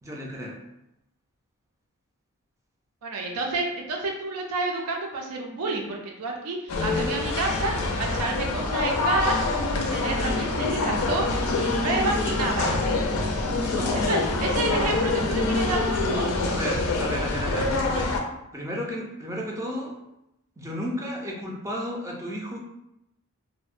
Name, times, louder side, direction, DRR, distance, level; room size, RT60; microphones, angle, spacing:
voice 1, 0.0-0.6 13.7-14.1 14.5-14.7 16.5-18.1 18.5-20.0 20.6-22.6, equal, 15° right, -2 dB, 0.4 m, -33 dB
voice 2, 3.0-9.4 9.7-12.7 13.9-16.3, right 3 dB, 85° right, 1 dB, 0.4 m, -29 dB
sound 1, 6.7-18.2, left 3 dB, 75° left, 0.4 m, -25 dB
2.6 x 2.0 x 2.4 m, 0.85 s
head